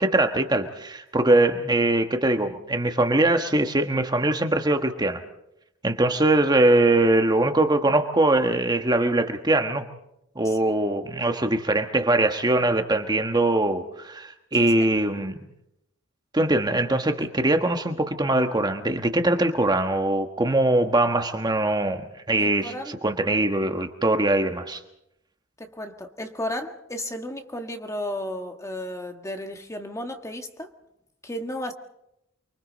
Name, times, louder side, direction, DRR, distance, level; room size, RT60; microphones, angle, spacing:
voice 1, 0.0-5.2 5.8-9.8 10.3-15.4 16.3-22.0 22.3-24.8, right 2 dB, 20° right, 6 dB, 1.3 m, -22 dB
voice 2, 22.4-23.0 25.6-30.7 31.2-31.7, left 1 dB, 15° left, 5 dB, 1.7 m, -34 dB
29.5 x 23.5 x 4.1 m, 0.80 s
head